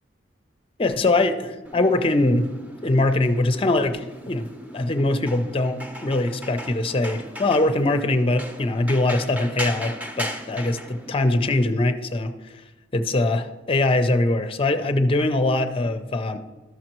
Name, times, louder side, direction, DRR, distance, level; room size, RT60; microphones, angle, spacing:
voice 1, 0.8-2.5 2.8-4.5 4.7-12.5 12.9-16.4, left 2 dB, 30° left, 9 dB, 0.5 m, -22 dB
sound 1, 1.6-11.7, equal, 10° right, 0.7 m, -37 dB
12.5 x 6.4 x 3.0 m, 1.2 s
head